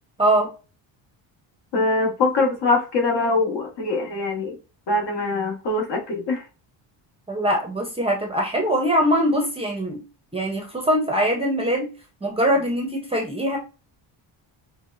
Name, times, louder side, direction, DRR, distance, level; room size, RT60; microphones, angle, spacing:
voice 1, 0.2-0.5 7.3-10.0 10.3-11.9 12.2-13.6, equal, 10° right, 0.7 m, -22 dB
voice 2, 1.7-4.6 4.9-6.4, left 3 dB, 55° left, 1.6 m, -23 dB
5.8 x 2.2 x 2.6 m
cardioid pair, 150°, 48 cm